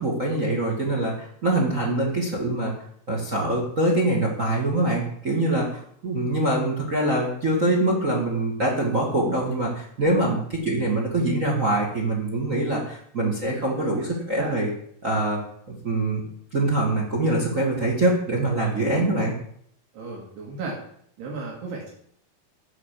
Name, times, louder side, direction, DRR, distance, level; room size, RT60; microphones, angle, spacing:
voice 1, 0.0-2.7 3.1-14.7 15.0-15.4 15.7-16.2 16.5-19.3, right 1 dB, 45° right, 0 dB, 1.0 m, -24 dB
voice 2, 18.8-19.1 19.9-20.8 21.2-21.9, right 3 dB, 75° right, -2 dB, 4.1 m, -35 dB
10.0 x 5.8 x 8.4 m, 0.66 s
omnidirectional pair, 4.8 m